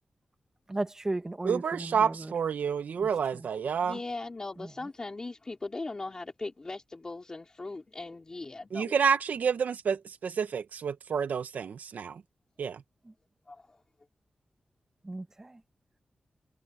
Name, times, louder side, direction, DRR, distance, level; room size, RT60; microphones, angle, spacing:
voice 1, 0.7-2.3 3.0-3.4 4.6-4.7 15.0-15.6, right 2 dB, 20° right, 1.2 m, -36 dB
voice 2, 1.4-4.0 8.7-12.2 12.6-12.8, right 6 dB, 85° right, 0.9 m, -29 dB
voice 3, 3.8-8.9 13.5-13.8, left 3 dB, 25° left, 2.9 m, -39 dB
wide cardioid pair, 165°, 3 cm